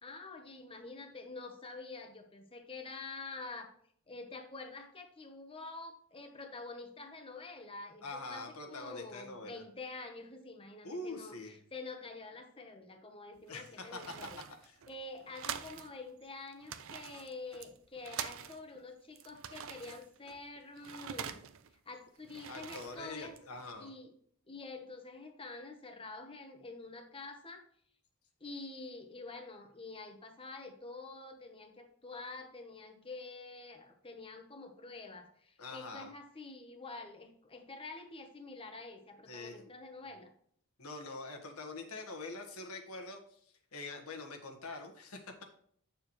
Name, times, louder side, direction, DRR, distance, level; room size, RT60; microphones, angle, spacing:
voice 1, 0.0-3.7 4.1-14.4 14.9-21.4 21.8-23.4 23.8-24.1 24.5-27.6 28.4-40.3, left 3 dB, 25° left, 5 dB, 1.1 m, -47 dB
voice 2, 8.0-9.6 10.8-11.6 13.5-14.1 14.6-14.7 22.5-23.9 35.6-36.1 39.3-39.7 40.8-45.4, left 3 dB, 75° left, 3 dB, 1.5 m, -44 dB
sound 1, 13.4-15.9 16.2-16.3 16.5-18.8 19.2-21.7 22.1-23.7, right 8 dB, 60° right, 0.6 m, -45 dB
9.4 x 6.7 x 3.2 m, 0.62 s
head